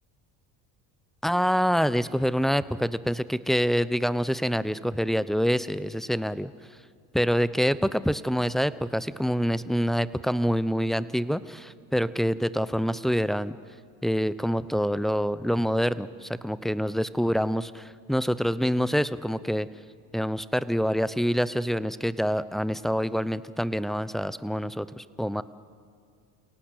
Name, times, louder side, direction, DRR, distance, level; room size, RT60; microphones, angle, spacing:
voice 1, 1.2-6.5 7.1-13.6 14.0-19.7 20.1-25.4, equal, ahead, 16 dB, 0.8 m, -26 dB
29.0 x 18.0 x 8.3 m, 2.2 s
hypercardioid pair, 70°, 46 cm